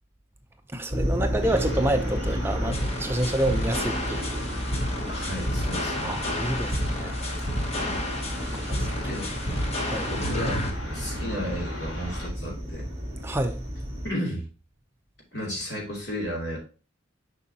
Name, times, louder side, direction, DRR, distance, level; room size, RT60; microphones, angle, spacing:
voice 1, 0.7-4.3 6.0-7.2 8.4-8.9 9.8-10.1 13.2-13.6, right 1 dB, 10° right, 0.6 m, -28 dB
sound 1, 0.9-14.1, equal, 30° right, 2.5 m, -32 dB
sound 2, 1.4-12.3, left 1 dB, 85° left, 2.9 m, -40 dB
sound 3, 2.7-10.7, left 1 dB, 30° left, 0.9 m, -31 dB
voice 2, 5.1-6.2 7.9-8.0 8.8-9.3 10.1-10.6 10.9-12.9 14.0-14.5 15.3-16.6, equal, 55° left, 2.6 m, -33 dB
7.0 x 5.4 x 2.8 m
head